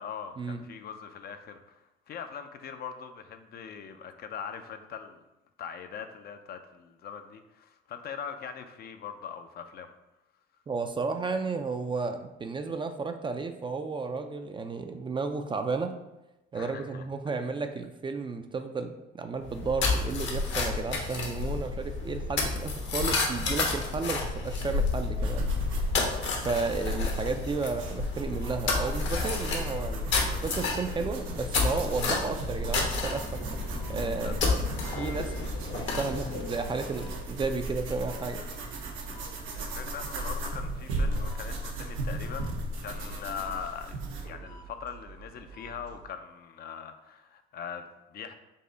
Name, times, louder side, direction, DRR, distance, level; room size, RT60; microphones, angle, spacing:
voice 1, 0.0-5.2 5.6-9.9 16.5-17.0 34.1-35.0 39.5-42.5 42.8-48.3, left 7 dB, 50° left, 7 dB, 0.5 m, -41 dB
voice 2, 10.7-15.9 16.5-25.5 26.4-33.5 33.9-34.6 35.0-38.4, right 4 dB, 25° right, 7 dB, 0.4 m, -33 dB
sound 1, 19.4-37.4, left 3 dB, 65° left, 1.0 m, -31 dB
sound 2, 25.2-44.3, right 1 dB, 80° right, 0.8 m, -37 dB
sound 3, 27.7-46.1, right 4 dB, 55° right, 0.8 m, -47 dB
5.4 x 2.0 x 3.9 m, 0.96 s
supercardioid pair, 80°, 20 cm